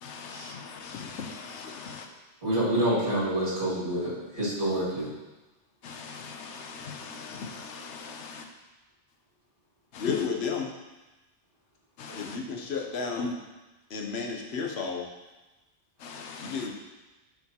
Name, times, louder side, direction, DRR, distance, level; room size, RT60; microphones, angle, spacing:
voice 1, 0.0-2.1 5.8-8.4 9.9-10.3 12.0-12.4 13.2-13.3 16.0-16.7, left 4 dB, 85° left, 4 dB, 1.0 m, -39 dB
voice 2, 2.4-5.1, right 1 dB, 60° right, -8 dB, 2.7 m, -27 dB
voice 3, 10.0-10.7 12.2-13.4 13.9-15.1 16.4-16.7, left 5 dB, 65° left, 1 dB, 1.1 m, -32 dB
7.8 x 4.8 x 2.9 m, 1.1 s
omnidirectional pair, 1.2 m